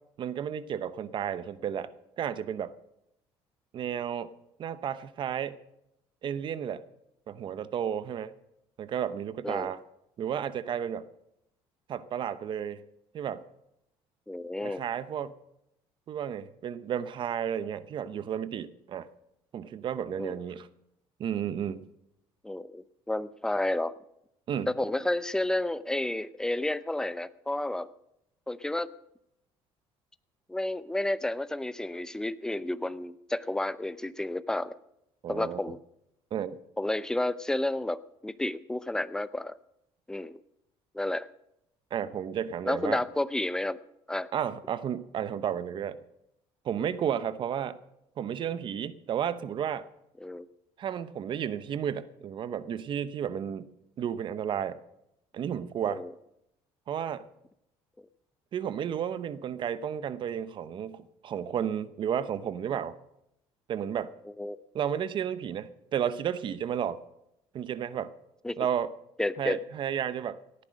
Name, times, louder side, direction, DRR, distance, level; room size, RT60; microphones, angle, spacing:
voice 1, 0.2-1.9 2.2-2.7 3.7-4.3 4.6-5.6 6.2-6.8 7.3-8.3 8.8-9.8 10.2-11.0 11.9-12.8 13.1-13.4 14.6-15.3 16.1-19.1 19.5-20.7 21.2-21.9 24.5-24.7 35.2-35.6 36.3-36.5 41.9-43.0 44.3-46.0 46.6-47.8 48.2-49.9 50.8-53.7 54.0-54.8 55.3-56.0 56.9-57.3 58.5-62.9 63.7-64.1 64.7-67.0 67.5-68.1 68.6-68.9 69.4-70.4, right 9 dB, 45° right, 15 dB, 0.8 m, -32 dB
voice 2, 14.3-14.8 20.2-20.4 22.4-23.9 24.7-27.9 28.5-28.9 30.5-34.8 35.3-35.8 36.8-39.6 40.1-40.4 40.9-41.3 42.7-43.8 44.1-44.3 50.2-50.5 55.8-56.1 58.0-58.1 64.4-64.6 68.4-68.6 69.2-69.6, left 1 dB, 5° left, 15 dB, 0.6 m, -31 dB
17.5 x 9.9 x 6.4 m, 0.81 s
cardioid pair, 120°, 11 cm